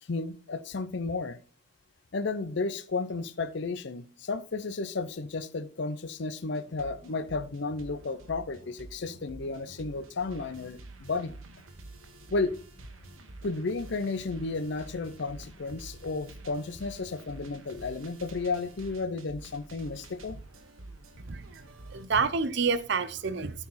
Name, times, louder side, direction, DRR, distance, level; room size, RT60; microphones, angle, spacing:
voice 1, 0.0-1.4 2.1-11.4 12.3-12.5 13.4-20.4, left 3 dB, 55° left, 12 dB, 0.6 m, -33 dB
sound 1, 6.6-22.1, right 2 dB, 75° right, 1.3 m, -48 dB
voice 2, 21.3-21.6 21.9-23.7, right 5 dB, 55° right, 14 dB, 0.6 m, -29 dB
13.0 x 4.7 x 4.1 m, 0.40 s
head